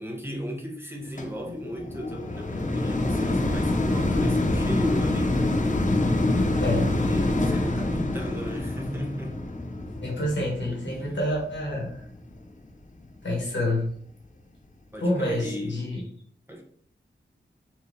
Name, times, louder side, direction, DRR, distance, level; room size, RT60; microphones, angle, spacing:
voice 1, 0.0-5.5 6.9-9.5 10.9-11.2 14.9-15.9 16.5-16.6, equal, 10° right, 0.9 m, -36 dB
sound 1, 1.2-12.4 13.0-13.1, left 2 dB, 40° left, 0.6 m, -26 dB
voice 2, 6.5-6.9 10.0-12.1 13.2-13.9 15.0-16.0, left 1 dB, 75° left, 1.6 m, -28 dB
4.7 x 2.8 x 3.2 m
wide cardioid pair, 75°, 19 cm